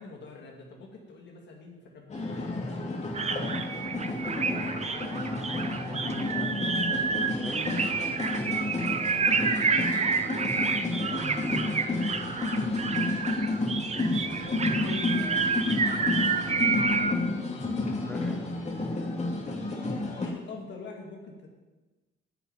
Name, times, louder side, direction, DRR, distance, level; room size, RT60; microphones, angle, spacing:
voice 1, 0.0-2.7 14.3-15.2 19.9-21.5, left 3 dB, 60° left, 1 dB, 2.4 m, -44 dB
sound 1, 2.1-20.3, left 2 dB, 35° left, 2.6 m, -31 dB
sound 2, 3.1-17.1, right 5 dB, 35° right, 1.0 m, -29 dB
voice 2, 3.8-4.9 5.3-6.8 7.3-7.8 8.8-10.1 10.9-11.8 14.7-15.4 15.8-17.4 18.0-18.7, equal, 5° left, -1 dB, 3.1 m, -44 dB
10.0 x 7.0 x 9.0 m, 1.2 s
cardioid pair, 90°, 20 cm